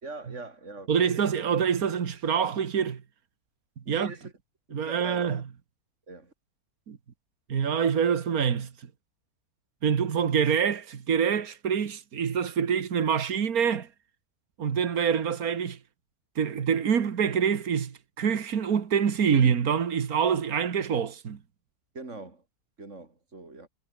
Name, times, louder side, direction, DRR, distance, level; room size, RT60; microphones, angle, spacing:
voice 1, 0.0-1.1 3.9-4.3 4.7-5.4 6.1-6.3 21.9-22.5 22.8-23.7, right 3 dB, 55° right, 4.0 m, -42 dB
voice 2, 0.9-3.0 3.9-4.1 4.7-5.4 6.9-7.0 7.5-8.7 9.8-13.9 14.6-15.8 16.4-21.4, right 7 dB, 80° right, 2.0 m, -26 dB
omnidirectional pair, 1.5 m